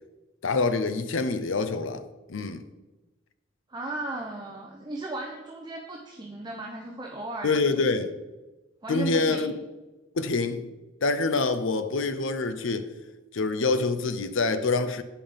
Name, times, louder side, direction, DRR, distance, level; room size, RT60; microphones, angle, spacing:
voice 1, 0.4-2.0 2.3-2.6 7.4-8.1 8.9-9.5 10.2-10.6 11.0-12.9 13.3-15.0, left 3 dB, 80° left, 0.6 m, -26 dB
voice 2, 3.7-7.8 8.8-9.5, right 2 dB, 20° right, 0.8 m, -36 dB
9.0 x 5.5 x 5.2 m
head